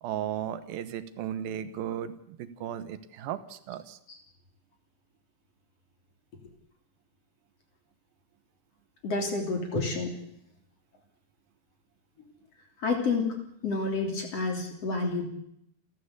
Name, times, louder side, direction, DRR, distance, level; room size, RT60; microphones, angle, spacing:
voice 1, 0.0-4.0, right 10 dB, 85° right, 12 dB, 3.1 m, -35 dB
voice 2, 9.0-10.2 12.8-13.3 13.6-15.3, left 3 dB, 45° left, 3 dB, 4.1 m, -29 dB
29.5 x 14.0 x 8.3 m, 0.75 s
omnidirectional pair, 4.1 m